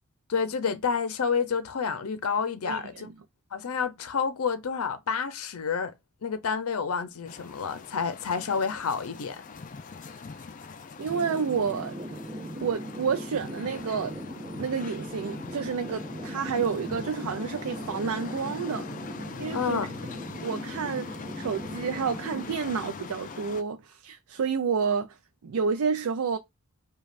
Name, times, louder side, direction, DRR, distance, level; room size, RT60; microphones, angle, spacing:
voice 1, 0.3-3.1 3.5-5.9 6.2-9.4 19.5-19.9, left 6 dB, 90° left, 0.6 m, -29 dB
voice 2, 2.7-3.1 11.0-12.0 12.6-14.1 14.6-18.9 19.4-19.8 20.4-25.2 25.4-26.4, right 6 dB, 90° right, 0.4 m, -30 dB
sound 1, 7.2-23.6, left 4 dB, 35° left, 0.4 m, -42 dB
sound 2, 11.1-22.5, right 1 dB, 30° right, 1.0 m, -39 dB
5.1 x 2.3 x 2.4 m
head